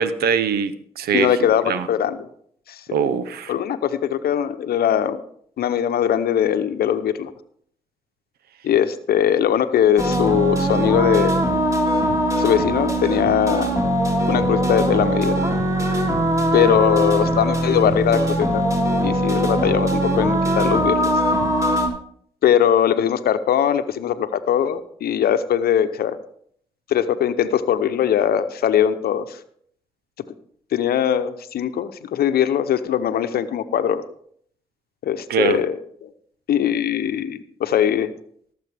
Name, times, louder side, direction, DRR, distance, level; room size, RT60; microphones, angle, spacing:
voice 1, 0.0-1.3 1.7-1.9 2.9-3.5 35.3-35.6, right 7 dB, 80° right, 14 dB, 0.8 m, -22 dB
voice 2, 1.1-2.3 2.7-3.0 3.5-5.2 5.6-7.3 8.6-11.4 12.4-13.8 14.3-15.4 16.5-18.6 19.0-21.2 22.4-26.2 26.9-29.4 30.7-34.0 35.0-36.1 36.5-38.1, left 9 dB, 75° left, 10 dB, 0.8 m, -21 dB
sound 1, 10.0-21.9, right 1 dB, 20° right, 3.2 m, -21 dB
18.0 x 7.6 x 3.5 m, 0.64 s
supercardioid pair, 40°, 16 cm